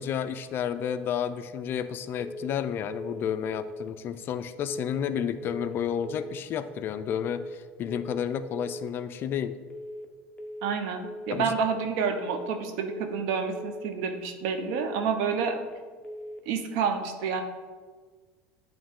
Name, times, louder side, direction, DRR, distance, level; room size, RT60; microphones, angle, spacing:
voice 1, 0.0-9.6 11.3-11.6, left 8 dB, 40° left, 11 dB, 0.3 m, -31 dB
sound 1, 2.2-2.6 2.9-3.3 3.5-3.9 4.7-5.1 5.4-5.8 6.0-6.4 7.2-7.6 7.9-8.3 8.5-8.9 9.7-10.1 10.4-10.8 11.0-11.4 12.2-12.6 12.9-13.3 13.5-13.9 14.7-15.1 15.4-15.8 16.0-16.4, equal, 20° left, 0.7 m, -40 dB
voice 2, 10.6-15.6 16.5-17.4, right 6 dB, 70° right, 6 dB, 0.7 m, -29 dB
8.6 x 3.1 x 3.6 m, 1.5 s
supercardioid pair, 120°, 6 cm